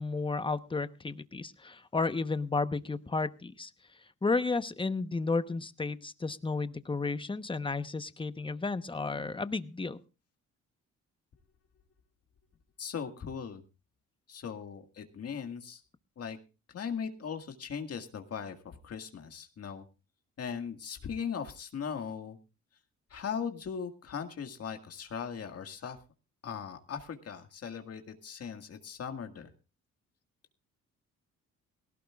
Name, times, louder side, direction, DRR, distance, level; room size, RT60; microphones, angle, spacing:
voice 1, 0.0-3.7 4.2-10.0, left 3 dB, 15° left, 11 dB, 1.0 m, -32 dB
voice 2, 12.8-13.6 14.3-15.8 16.2-16.4 16.7-19.8 20.4-22.4 23.1-26.0 26.4-29.5, left 7 dB, 55° left, 6 dB, 1.9 m, -39 dB
18.5 x 17.0 x 2.4 m, 0.31 s
cardioid pair, 90°, 30 cm